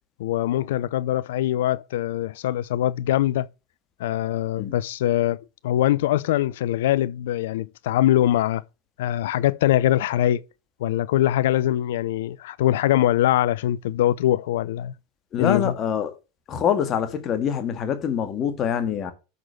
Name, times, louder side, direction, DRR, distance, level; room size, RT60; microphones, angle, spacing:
voice 1, 0.2-3.5 4.0-5.4 5.6-8.6 9.0-10.4 10.8-14.9 15.4-15.7, left 13 dB, 65° left, 0.5 m, -22 dB
voice 2, 15.3-16.2 16.5-19.1, left 8 dB, 35° left, 1.9 m, -25 dB
6.6 x 6.1 x 7.4 m
figure-of-eight pair, 80°, 0 cm